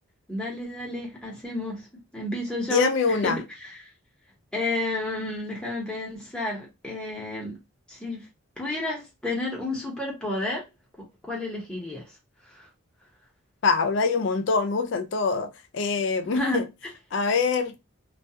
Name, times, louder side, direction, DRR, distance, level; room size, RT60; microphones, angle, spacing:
voice 1, 0.3-1.9 2.1-3.3 3.6-3.9 4.5-7.6 7.9-8.3 8.6-10.6 11.0-12.1 12.5-12.7 16.3-16.6, left 2 dB, 5° left, 0.8 m, -31 dB
voice 2, 2.7-3.4 13.6-16.6 17.1-17.7, left 4 dB, 60° left, 0.4 m, -24 dB
2.3 x 2.2 x 2.7 m
head